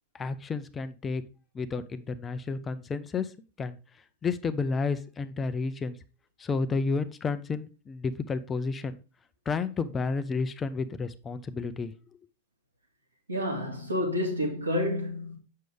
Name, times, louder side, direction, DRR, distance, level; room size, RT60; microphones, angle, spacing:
voice 1, 0.1-1.2 1.5-3.3 3.6-3.8 4.2-6.0 6.4-9.0 9.5-11.9, left 4 dB, 20° left, 0.6 m, -31 dB
voice 2, 13.3-15.4, left 1 dB, 80° right, 2.5 m, -29 dB
7.6 x 6.5 x 3.5 m
figure-of-eight pair, 90°, 0 cm